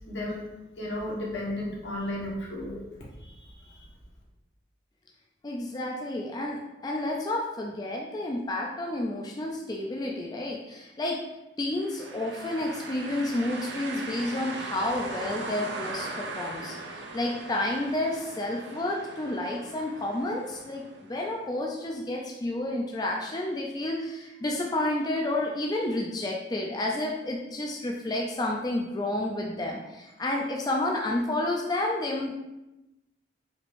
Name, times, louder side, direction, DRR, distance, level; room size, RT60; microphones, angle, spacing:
voice 1, 0.1-0.4 0.8-3.9, left 1 dB, 80° left, -4 dB, 1.3 m, -34 dB
voice 2, 5.4-11.2 11.6-32.4, left 1 dB, 20° left, -1 dB, 0.4 m, -30 dB
sound 1, 11.8-21.6, right 3 dB, 70° right, 0.5 m, -39 dB
5.0 x 2.6 x 3.5 m, 0.98 s
head